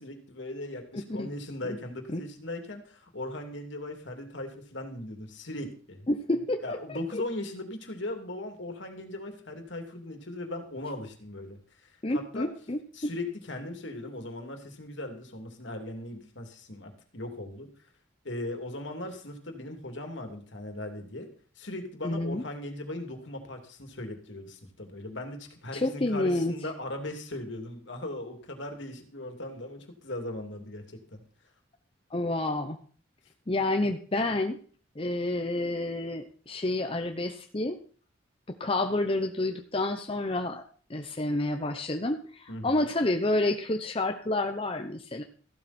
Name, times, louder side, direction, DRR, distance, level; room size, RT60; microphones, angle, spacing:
voice 1, 0.0-6.1 6.6-12.5 12.9-17.7 18.2-21.3 21.6-31.2 42.5-42.9, left 1 dB, 60° left, 4 dB, 2.8 m, -38 dB
voice 2, 6.1-7.2 12.0-12.8 22.0-22.4 25.7-26.5 32.1-32.8 33.5-34.6 35.0-37.8 38.5-40.6 40.9-45.2, left 2 dB, 30° left, 5 dB, 0.8 m, -29 dB
15.0 x 12.0 x 4.4 m, 0.42 s
head